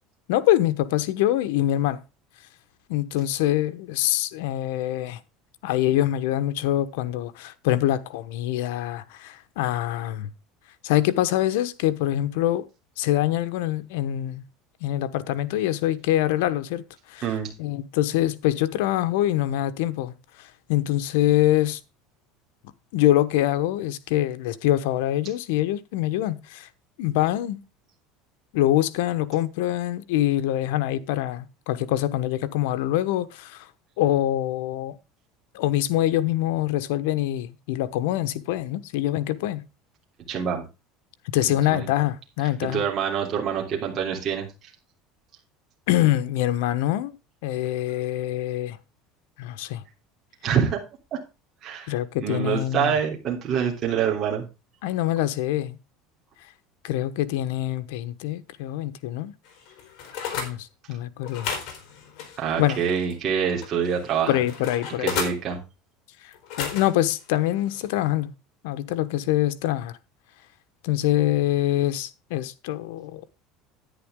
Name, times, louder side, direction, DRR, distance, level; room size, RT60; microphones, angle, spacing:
voice 1, 0.3-2.0 2.9-5.2 5.6-10.3 10.8-12.6 13.0-14.4 14.8-17.2 17.6-21.8 22.9-26.7 27.0-27.6 28.5-33.7 34.0-35.0 35.5-39.6 41.3-42.8 45.9-47.2 47.4-48.8 49.4-49.8 51.9-53.0 54.8-55.8 56.8-59.3 60.4-61.5 62.6-62.8 64.3-65.1 66.6-68.3 68.6-70.0 70.8-73.2, left 14 dB, 80° left, 1.1 m, -24 dB
voice 2, 17.2-17.5 40.3-40.6 41.7-41.9 42.7-44.5 50.4-50.8 51.1-51.2 51.6-51.9 52.2-54.5 62.4-64.4 65.0-65.6, right 7 dB, 35° right, 3.2 m, -25 dB
sound 1, 59.4-60.5 61.2-63.2 63.6-65.4 66.3-67.1 67.7-67.9, left 7 dB, 55° left, 4.2 m, -34 dB
10.5 x 9.7 x 3.7 m
cardioid pair, 150°, 0 cm